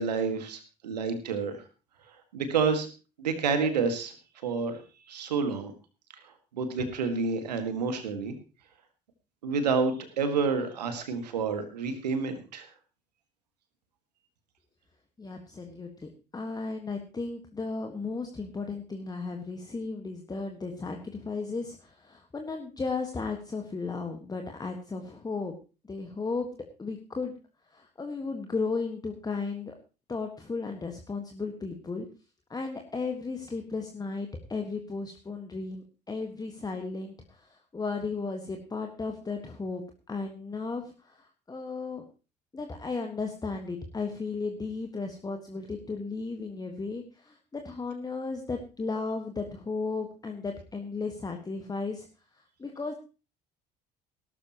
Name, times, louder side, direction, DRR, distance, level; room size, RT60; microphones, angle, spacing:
voice 1, 0.0-1.6 2.3-2.9 3.2-4.1 4.4-4.8 5.1-5.7 6.5-8.3 9.4-12.7, right 5 dB, 75° right, 9 dB, 1.9 m, -29 dB
voice 2, 15.2-25.5 25.9-26.5 26.8-27.3 27.7-29.7 30.1-32.1 32.5-39.8 40.1-42.0 42.5-52.1 52.6-52.9, left 4 dB, 20° left, 4 dB, 1.6 m, -35 dB
18.0 x 12.5 x 3.0 m, 0.32 s
figure-of-eight pair, 60°, 21 cm